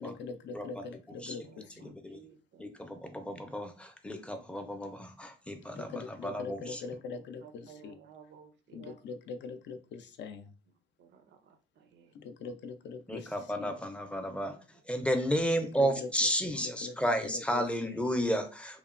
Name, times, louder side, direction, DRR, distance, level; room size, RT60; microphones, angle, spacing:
voice 1, 0.0-1.9 5.7-8.0 8.7-10.5 12.1-13.7 15.6-16.1 16.4-18.0, left 4 dB, 65° left, 9 dB, 0.4 m, -43 dB
voice 2, 0.5-0.8 1.2-1.4 1.8-2.2 2.6-6.8 13.1-14.6 14.9-18.8, equal, 5° left, 6 dB, 0.5 m, -32 dB
voice 3, 1.3-2.6 6.2-6.8 7.4-9.0 11.0-12.1, right 7 dB, 65° right, 7 dB, 0.5 m, -56 dB
2.9 x 2.1 x 2.4 m, 0.36 s
cardioid pair, 90°, 20 cm